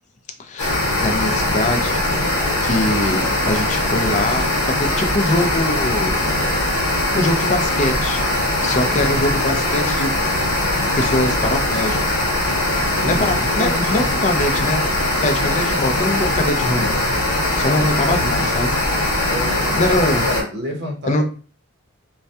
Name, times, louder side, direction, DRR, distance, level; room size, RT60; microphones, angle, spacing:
voice 1, 0.4-2.0 2.6-4.5 4.8-6.1 7.1-8.2 8.6-10.1 10.9-12.2 13.1-14.9 15.2-17.0 17.6-18.7 19.7-20.3 21.1-21.2, left 1 dB, 35° left, 5 dB, 0.4 m, -22 dB
sound 1, 0.6-20.4, left 1 dB, 75° left, 1.0 m, -20 dB
voice 2, 8.9-9.4 12.9-14.0 17.6-18.4 19.3-19.8 20.2-21.2, left 1 dB, 50° right, 1 dB, 0.6 m, -29 dB
2.2 x 2.1 x 2.6 m, 0.37 s
head